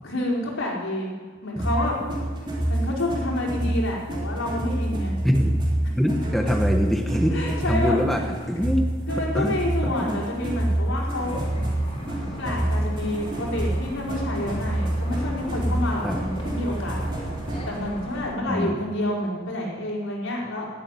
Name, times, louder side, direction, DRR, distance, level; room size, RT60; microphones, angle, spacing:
voice 1, 0.0-1.1 1.4-2.0 2.7-5.2 6.4-6.5 7.3-8.3 8.6-8.7 9.1-11.4 12.2-17.0 17.6-20.7, left 1 dB, 70° left, -3 dB, 4.6 m, -28 dB
sound 1, 1.6-17.8, right 1 dB, 25° right, 3.4 m, -27 dB
voice 2, 5.2-5.6 6.0-7.4 7.7-8.8 9.3-9.6 9.8-10.2 11.9-12.2 16.0-16.2 18.5-18.8, equal, ahead, 2 dB, 1.1 m, -24 dB
sound 2, 11.1-18.3, equal, 30° left, 3.9 m, -37 dB
16.5 x 8.6 x 10.0 m, 1.5 s
head